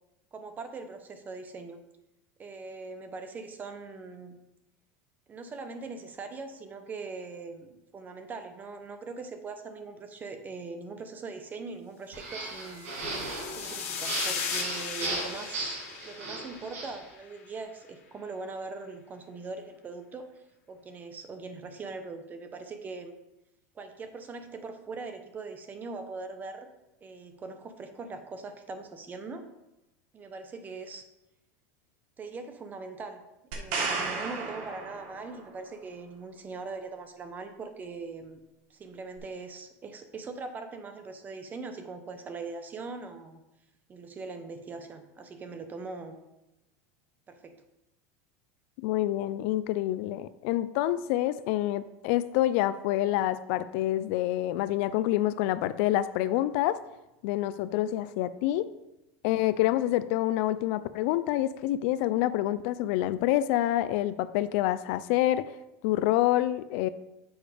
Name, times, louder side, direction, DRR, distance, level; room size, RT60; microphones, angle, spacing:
voice 1, 0.3-1.8 2.4-4.4 5.3-12.9 13.5-15.8 16.0-20.3 20.7-23.1 23.7-26.7 27.0-29.5 30.1-31.0 32.2-33.2 33.5-38.4 38.7-43.4 43.9-46.2 47.3-47.5, right 4 dB, 25° right, 8 dB, 0.8 m, -41 dB
sound 1, 12.1-17.0, right 2 dB, 90° right, 2.9 m, -36 dB
sound 2, 12.6-17.1, left 7 dB, 80° left, 1.5 m, -37 dB
sound 3, 33.5-35.5 39.2-39.3, right 4 dB, 65° right, 1.5 m, -33 dB
voice 2, 48.8-56.8 57.2-58.7 59.2-65.5 65.8-66.9, left 14 dB, 65° left, 14 dB, 0.4 m, -27 dB
7.1 x 4.8 x 4.9 m, 0.93 s
supercardioid pair, 135°, 8 cm